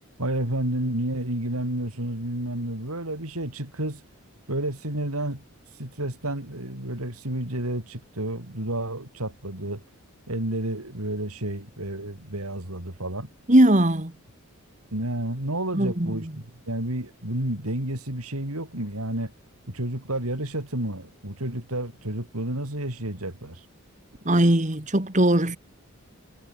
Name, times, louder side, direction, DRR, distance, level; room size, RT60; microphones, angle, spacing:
voice 1, 0.2-4.0 4.5-5.4 5.8-9.8 10.3-13.3 14.9-19.3 19.7-23.6, right 1 dB, 80° right, 5.1 m, -30 dB
voice 2, 13.5-14.1 15.7-16.3 24.3-25.6, right 1 dB, 35° right, 2.1 m, -20 dB
head